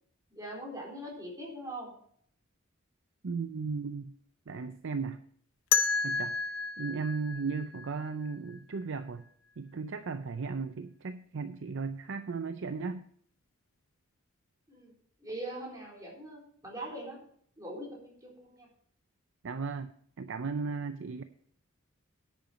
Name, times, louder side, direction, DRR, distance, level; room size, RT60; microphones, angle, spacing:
voice 1, 0.3-1.9 14.7-14.9 15.2-17.2 17.6-18.7, right 1 dB, 15° right, -3 dB, 4.1 m, -42 dB
voice 2, 3.2-4.1 4.5-5.2 6.0-9.3 9.6-13.0 19.4-19.9 20.2-21.2, right 4 dB, 65° right, 10 dB, 0.5 m, -36 dB
sound 1, 5.7-8.6, left 5 dB, 70° left, 0.7 m, -31 dB
10.5 x 8.3 x 5.0 m, 0.62 s
head